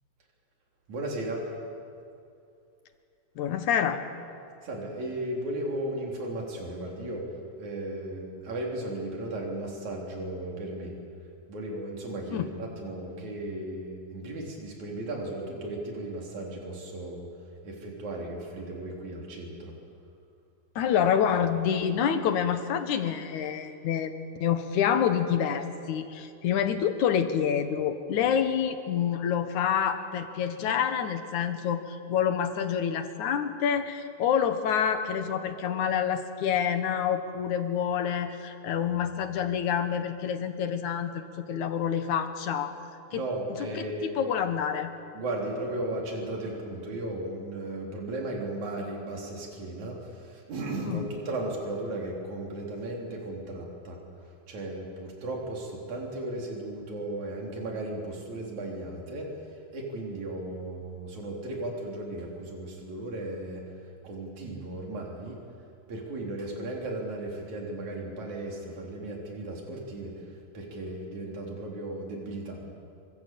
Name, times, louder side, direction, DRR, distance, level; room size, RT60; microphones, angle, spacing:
voice 1, 0.9-1.4 4.6-7.2 7.6-10.9 11.5-17.3 17.6-19.7 43.1-44.3 45.1-50.0 50.3-54.0 54.5-59.3 59.7-63.6 64.0-65.4 65.9-70.1 70.5-72.7, right 1 dB, 65° right, -1 dB, 5.0 m, -35 dB
voice 2, 3.4-4.0 12.3-12.5 20.8-42.7 43.1-43.3 43.6-44.9 50.8-51.1, left 8 dB, 75° left, 8 dB, 2.7 m, -27 dB
26.0 x 24.5 x 7.6 m, 2.5 s
omnidirectional pair, 3.5 m